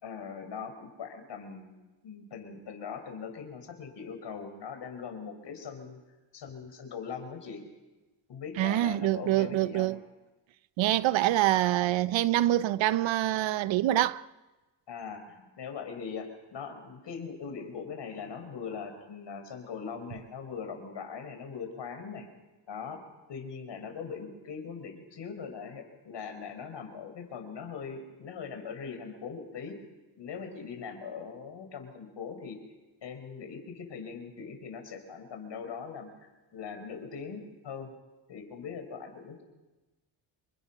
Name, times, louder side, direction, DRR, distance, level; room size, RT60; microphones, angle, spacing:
voice 1, 0.0-1.7 2.0-6.0 6.3-7.6 8.3-9.9 14.9-22.3 22.7-23.0 23.3-29.8 30.2-32.6 33.0-37.9 38.3-39.4, left 6 dB, 70° left, 5.3 m, -41 dB
voice 2, 8.6-10.0 10.8-14.2, right 14 dB, 85° right, 0.8 m, -25 dB
27.5 x 23.5 x 5.8 m
cardioid pair, 65°, 44 cm